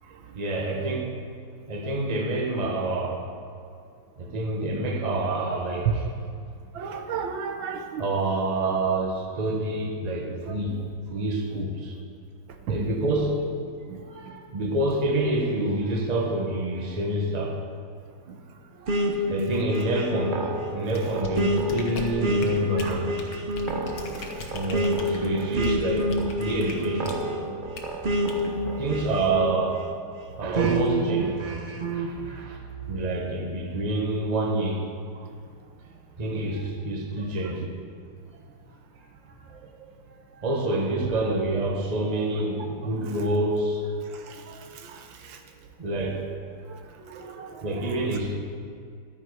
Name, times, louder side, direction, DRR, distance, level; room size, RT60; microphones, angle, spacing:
voice 1, 0.4-1.1 1.7-3.3 4.2-6.0 6.8-7.0 8.0-10.8 11.1-12.0 12.7-13.4 14.1-17.6 18.8-20.4 20.7-23.2 24.5-26.1 26.4-27.2 28.8-29.9 30.4-31.6 31.9-32.6 32.9-34.8 36.2-37.7 39.5-39.7 40.4-43.8 45.8-46.2 47.1-47.3 47.6-48.4, right 2 dB, 25° right, 1 dB, 1.1 m, -27 dB
voice 2, 6.7-8.1 10.5-10.8 11.5-11.6 12.7-12.9 13.9-14.0 14.6-14.7 22.7-23.0 23.6-23.7 30.6-30.7 37.4-37.6 44.3-45.0 45.3-45.4 47.1-48.2, right 6 dB, 85° right, 5 dB, 1.6 m, -35 dB
sound 1, 18.9-29.9 30.5-32.1, equal, 50° right, 0.6 m, -28 dB
sound 2, 20.9-27.3 27.7-27.9 28.3-28.5, left 3 dB, 65° left, 1.7 m, -39 dB
12.5 x 9.3 x 4.9 m, 2.3 s
omnidirectional pair, 2.1 m